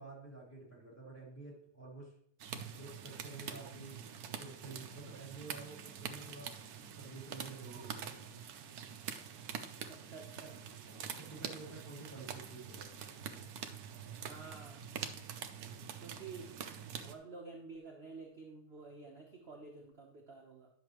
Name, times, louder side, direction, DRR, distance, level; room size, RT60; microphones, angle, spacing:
voice 1, 0.0-2.1 2.7-6.5 7.0-8.3 10.9-13.0, right 3 dB, 5° left, -5 dB, 3.4 m, -50 dB
sound 1, 2.4-17.1, right 7 dB, 70° right, 0.9 m, -45 dB
voice 2, 9.9-10.6 14.2-14.8 16.0-16.5 17.0-20.7, right 4 dB, 40° right, 0 dB, 0.9 m, -50 dB
10.0 x 6.9 x 3.0 m, 0.69 s
omnidirectional pair, 2.4 m